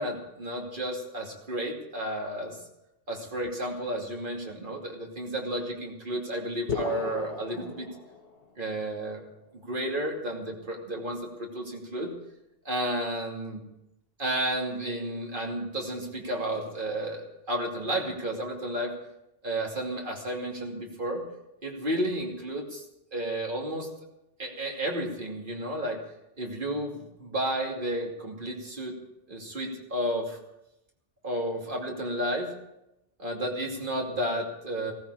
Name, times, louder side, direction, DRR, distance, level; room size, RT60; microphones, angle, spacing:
voice 1, 0.0-2.6 3.1-7.9 8.6-9.2 9.5-12.1 12.6-13.6 14.2-17.2 17.5-18.9 19.4-21.2 21.6-22.8 23.1-23.9 24.4-26.0 26.4-29.0 29.3-30.4 31.2-32.5 33.2-34.9, right 1 dB, 50° right, 0 dB, 2.9 m, -32 dB
sound 1, 6.7-8.6, left 5 dB, 65° left, 1.5 m, -35 dB
17.0 x 15.0 x 4.9 m, 0.88 s
omnidirectional pair, 1.1 m